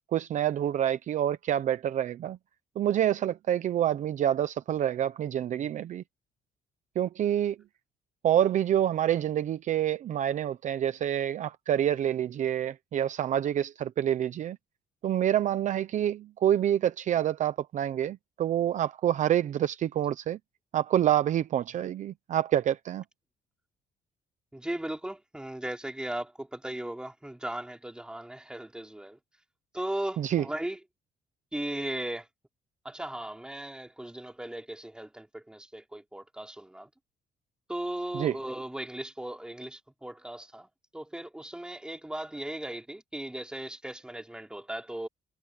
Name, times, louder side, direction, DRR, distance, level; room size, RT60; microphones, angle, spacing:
voice 1, 0.1-2.4 2.8-6.0 7.0-7.6 8.2-14.6 15.0-20.4 20.7-23.0 30.2-30.4 38.1-38.3, right 11 dB, 50° right, 0.7 m, -27 dB
voice 2, 24.5-29.2 29.7-30.8 31.5-32.3 32.8-36.9 37.7-40.7 40.9-45.1, right 1 dB, 5° right, 4.3 m, -37 dB
cardioid pair, 165°, 17 cm